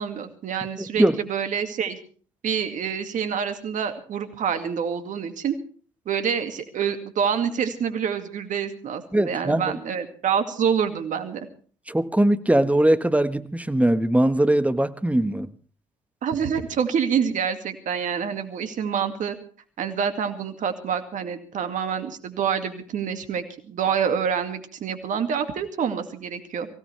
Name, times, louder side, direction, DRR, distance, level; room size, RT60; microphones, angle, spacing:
voice 1, 0.0-2.0 2.4-5.6 6.1-11.5 16.2-19.4 19.8-26.7, right 7 dB, 60° right, 2.2 m, -27 dB
voice 2, 9.1-9.8 11.9-15.5, right 1 dB, 10° right, 1.4 m, -21 dB
23.5 x 16.5 x 3.4 m
hypercardioid pair, 45°, 15 cm